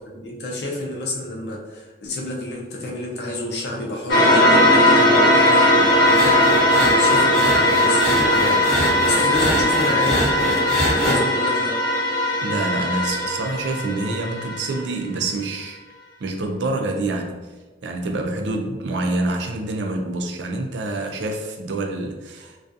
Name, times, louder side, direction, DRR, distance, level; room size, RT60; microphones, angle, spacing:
voice 1, 0.0-6.5 7.0-8.7 9.0-10.3 11.0-11.8, left 1 dB, 70° left, -1 dB, 0.5 m, -29 dB
sound 1, 4.1-14.8, left 1 dB, 90° left, 1.0 m, -18 dB
sound 2, 6.0-11.2, equal, ahead, 0.8 m, -25 dB
voice 2, 12.4-15.8 16.2-17.4 17.8-22.6, right 2 dB, 85° right, 3 dB, 0.4 m, -26 dB
2.3 x 2.3 x 2.6 m, 1.3 s
head